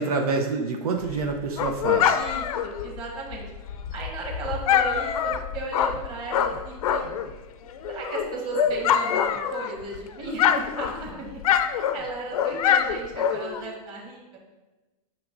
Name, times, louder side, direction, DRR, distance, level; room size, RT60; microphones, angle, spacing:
voice 1, 0.0-2.2, right 4 dB, 70° right, 3 dB, 0.8 m, -27 dB
Dog, 1.0-7.3 7.7-10.0 10.2-13.7, left 8 dB, 65° left, 0.6 m, -25 dB
voice 2, 2.1-3.5 3.9-7.0 7.9-11.4 11.7-14.2, right 2 dB, 25° right, -2 dB, 1.5 m, -35 dB
9.3 x 6.0 x 2.6 m, 1.1 s
supercardioid pair, 165°, 20 cm